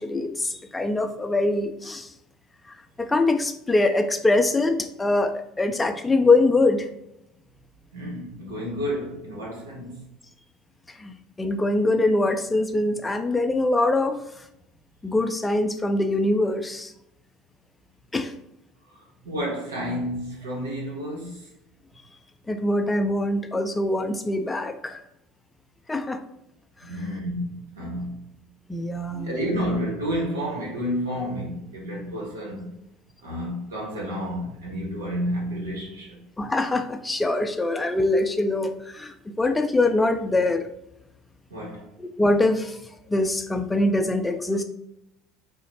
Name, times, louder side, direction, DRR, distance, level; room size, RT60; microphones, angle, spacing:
voice 1, 0.0-2.1 2.7-6.9 10.9-14.4 15.0-16.9 18.1-18.3 22.5-25.0 25.9-26.2 26.8-27.0 28.7-29.4 31.2-31.3 36.4-40.7 42.0-42.8 43.1-44.6, left 2 dB, 15° left, 0.4 m, -23 dB
voice 2, 7.9-10.0 18.9-21.5 26.8-28.3 29.2-32.7 33.2-36.2 41.5-41.9, equal, 80° right, 1.1 m, -30 dB
3.8 x 2.1 x 2.8 m
hypercardioid pair, 65°, 0 cm